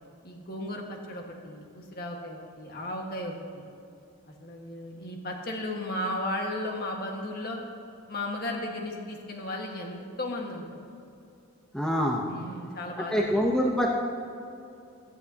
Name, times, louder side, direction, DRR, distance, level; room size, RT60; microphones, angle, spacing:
voice 1, 0.2-3.7 4.4-7.6 8.1-10.8 12.2-13.3, left 1 dB, 45° left, 1 dB, 1.6 m, -35 dB
voice 2, 11.7-12.2 13.1-13.9, equal, 5° left, -2 dB, 0.8 m, -25 dB
16.5 x 13.0 x 2.9 m, 2.7 s
head